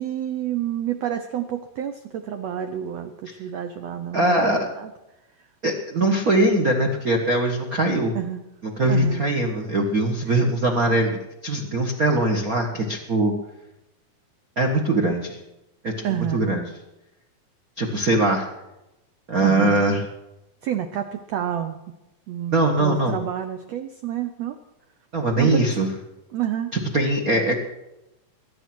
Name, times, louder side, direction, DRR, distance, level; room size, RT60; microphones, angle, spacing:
voice 1, 0.0-4.9 8.1-8.4 8.9-9.2 16.0-16.5 19.4-19.8 20.6-21.8 22.3-24.6 25.4-25.7 26.3-26.7, right 10 dB, 85° right, 8 dB, 1.4 m, -29 dB
voice 2, 4.1-4.7 5.6-8.1 8.8-13.3 14.6-15.4 15.8-16.7 17.8-18.5 19.3-20.0 22.5-23.2 25.1-25.9 26.7-27.6, right 2 dB, 60° right, 2 dB, 0.9 m, -21 dB
22.5 x 9.9 x 6.1 m, 0.95 s
omnidirectional pair, 4.2 m